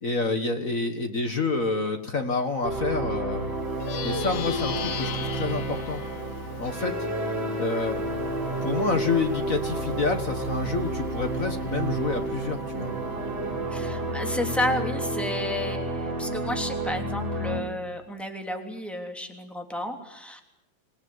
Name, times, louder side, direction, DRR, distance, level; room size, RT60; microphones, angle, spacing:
voice 1, 0.0-3.5 4.0-6.0 6.6-7.0 7.6-8.0 8.6-12.9, left 3 dB, 45° left, 7 dB, 1.1 m, -28 dB
sound 1, 2.6-17.6, right 2 dB, 35° right, 7.0 m, -31 dB
Plucked string instrument, 3.7-13.4, left 6 dB, 80° left, 3.1 m, -36 dB
voice 2, 13.7-20.4, left 1 dB, ahead, 4 dB, 2.7 m, -32 dB
27.0 x 18.0 x 9.5 m, 0.85 s
omnidirectional pair, 3.5 m